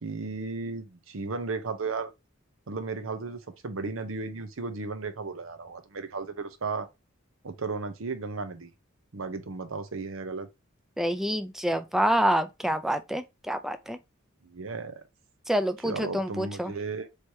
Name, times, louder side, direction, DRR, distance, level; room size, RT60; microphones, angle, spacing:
voice 1, 0.0-2.1 2.7-6.9 7.4-8.7 9.1-10.5 14.4-15.0 15.8-17.1, right 4 dB, 80° right, 0.8 m, -34 dB
voice 2, 11.0-14.0 15.5-16.7, equal, ahead, 0.4 m, -27 dB
3.3 x 2.8 x 4.6 m
head